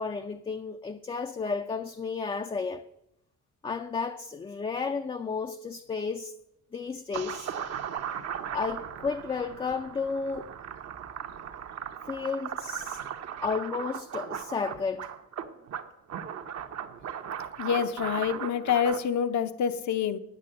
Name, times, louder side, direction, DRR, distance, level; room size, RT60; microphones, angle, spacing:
voice 1, 0.0-2.8 3.6-6.3 6.7-7.5 8.5-10.5 12.1-13.0 13.4-15.1, left 5 dB, 20° left, 0.4 m, -32 dB
sound 1, 7.1-19.0, right 8 dB, 60° right, 1.0 m, -37 dB
voice 2, 17.6-20.2, left 8 dB, 70° left, 0.9 m, -27 dB
9.2 x 8.3 x 7.6 m
cardioid pair, 150°, 30 cm